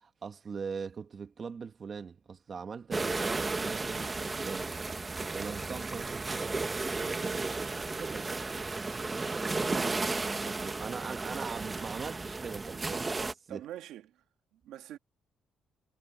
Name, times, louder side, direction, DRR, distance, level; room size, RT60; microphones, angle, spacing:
voice 1, 0.0-4.7 5.3-6.6 6.9-8.5 9.7-13.6, right 5 dB, 45° right, 1.9 m, -41 dB
sound 1, 2.9-13.3, right 3 dB, 25° right, 1.7 m, -34 dB
voice 2, 13.5-14.2 14.5-15.0, right 12 dB, 90° right, 1.7 m, -45 dB
cardioid pair, 90°, 0 cm